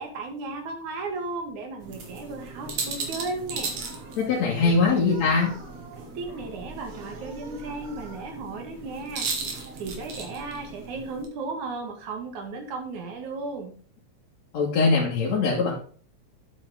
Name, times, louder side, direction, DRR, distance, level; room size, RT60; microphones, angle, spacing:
voice 1, 0.0-3.7 4.6-4.7 6.2-13.7, right 3 dB, 85° right, 3 dB, 3.2 m, -35 dB
sound 1, 1.8-11.3, right 4 dB, 60° right, 2.8 m, -36 dB
voice 2, 4.2-5.5 14.5-15.8, left 4 dB, 65° left, -5 dB, 3.0 m, -22 dB
8.6 x 7.9 x 3.8 m, 0.43 s
omnidirectional pair, 3.3 m